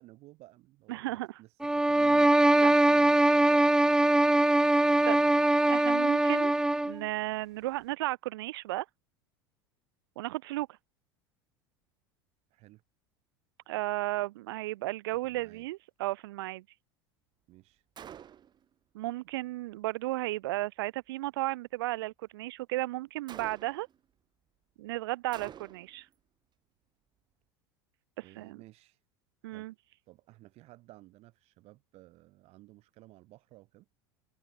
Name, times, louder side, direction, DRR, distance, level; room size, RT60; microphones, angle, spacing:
voice 1, 0.0-5.4 12.5-12.8 15.1-15.7 17.5-17.8 28.2-29.0 29.4-29.7 30.1-33.9, right 18 dB, 55° right, 7.9 m, -55 dB
voice 2, 0.9-1.4 2.6-2.8 5.0-5.2 5.7-8.8 10.2-10.7 13.7-16.6 18.9-23.9 24.8-26.1 28.4-28.6 29.4-29.7, right 18 dB, 75° right, 1.1 m, -34 dB
sound 1, 1.6-7.0, right 1 dB, 5° right, 0.5 m, -22 dB
Gunshot gunfire, 18.0-18.6 23.3-24.0 25.3-26.0, right 9 dB, 35° right, 1.4 m, -47 dB
hypercardioid pair, 85°, 13 cm